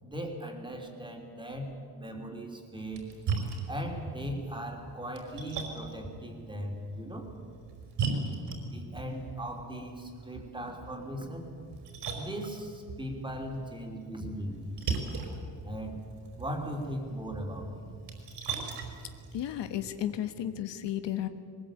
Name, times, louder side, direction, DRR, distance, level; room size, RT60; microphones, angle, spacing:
voice 1, 0.0-3.1 3.7-7.3 8.6-11.5 12.1-14.8 15.6-16.0 16.4-17.8, equal, 10° right, 2 dB, 3.1 m, -38 dB
Splash splatter, 2.8-19.9, right 4 dB, 70° right, 4.9 m, -39 dB
voice 2, 19.3-21.3, left 11 dB, 75° left, 9 dB, 1.4 m, -33 dB
23.0 x 20.5 x 8.8 m, 2.3 s
cardioid pair, 170°, 43 cm